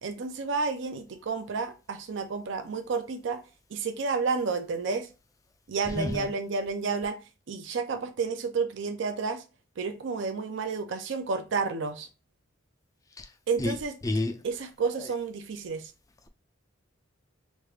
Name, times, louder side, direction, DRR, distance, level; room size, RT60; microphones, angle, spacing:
voice 1, 0.0-3.4 3.7-5.1 5.7-7.2 7.5-9.4 9.8-12.1 13.5-13.9 14.4-15.9, right 4 dB, 65° right, 0.4 m, -31 dB
voice 2, 6.0-6.3 13.2-13.3 13.6-13.8 14.0-14.4 15.0-15.1, left 2 dB, 15° left, 0.3 m, -30 dB
3.2 x 2.4 x 3.2 m
head